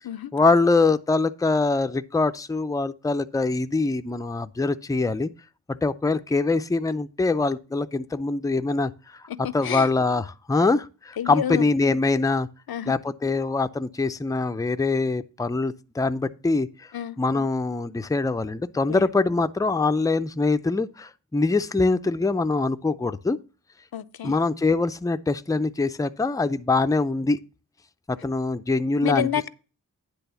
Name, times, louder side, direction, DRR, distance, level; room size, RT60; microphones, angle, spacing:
voice 1, 0.3-5.3 5.7-8.9 9.5-12.5 12.9-16.7 17.2-23.4 24.2-27.4 28.1-29.3, left 3 dB, 10° left, 0.4 m, -23 dB
voice 2, 9.3-9.9 11.2-11.7 12.7-13.0 16.9-17.2 18.9-19.1 23.9-24.4 29.0-29.5, left 9 dB, 80° left, 0.6 m, -29 dB
10.0 x 3.5 x 6.8 m
wide cardioid pair, 80°, 36 cm